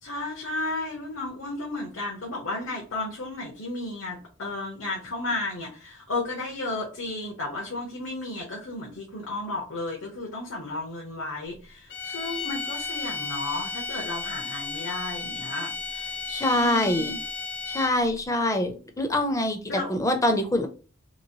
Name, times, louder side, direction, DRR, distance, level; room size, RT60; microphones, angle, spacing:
voice 1, 0.0-16.0 16.5-17.2 19.7-19.9, left 2 dB, 80° left, -2 dB, 0.9 m, -33 dB
sound 1, 11.9-18.1, left 4 dB, 55° left, 0.6 m, -34 dB
voice 2, 16.3-17.1 17.7-20.7, left 1 dB, 15° left, 6 dB, 0.5 m, -25 dB
3.0 x 2.9 x 2.8 m, 0.37 s
head